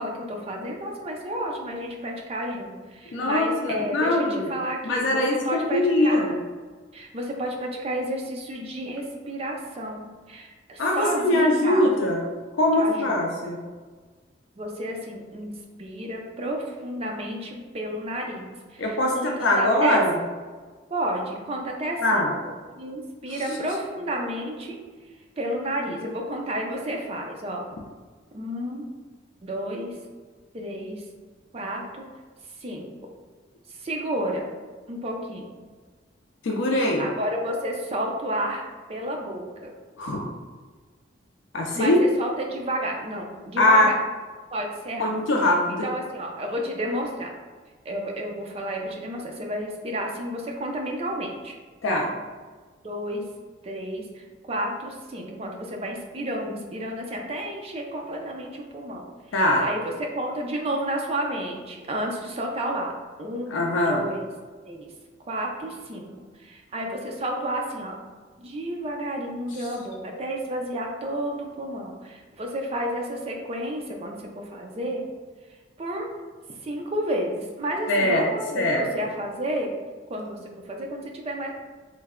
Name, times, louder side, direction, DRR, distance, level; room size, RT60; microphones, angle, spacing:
voice 1, 0.0-6.3 6.9-11.9 12.8-13.2 14.6-15.5 15.8-18.8 19.1-20.0 20.9-22.3 22.8-24.8 25.4-27.6 28.3-28.8 29.4-30.0 30.5-31.0 31.5-32.0 32.6-32.9 33.7-34.5 34.9-35.5 37.0-38.6 38.9-39.7 41.7-44.0 44.5-45.1 45.8-47.3 47.8-51.6 52.1-52.2 52.8-53.2 53.6-59.1 59.6-62.9 63.2-64.2 64.7-64.9 65.3-66.1 66.4-68.0 68.4-75.0 75.8-76.1 76.6-79.7 80.1-81.5, right 1 dB, 30° right, 1 dB, 0.4 m, -31 dB
voice 2, 3.1-4.5 4.8-6.3 10.8-12.2 12.6-13.6 18.8-20.2 22.0-22.3 23.3-23.6 36.4-37.1 40.0-40.3 41.5-42.0 43.6-43.9 45.0-45.8 51.8-52.1 59.3-59.7 63.5-64.1 69.6-69.7 77.9-78.3 78.5-78.9, left 1 dB, 80° left, 0 dB, 0.4 m, -22 dB
3.2 x 2.1 x 3.5 m, 1.4 s
head